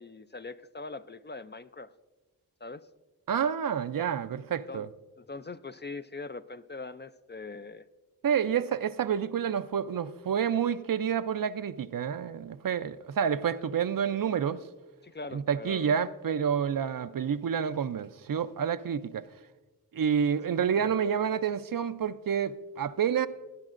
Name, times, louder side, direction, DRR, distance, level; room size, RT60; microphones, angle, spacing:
voice 1, 0.0-1.9 2.6-2.9 4.7-4.9 5.2-7.9 15.0-16.0 20.8-20.9, left 3 dB, 30° left, 0.4 m, -42 dB
voice 2, 3.3-4.9 8.2-14.6 15.3-19.2 19.9-23.3, right 7 dB, 60° right, 0.5 m, -29 dB
18.0 x 10.5 x 2.5 m
cardioid pair, 45°, 38 cm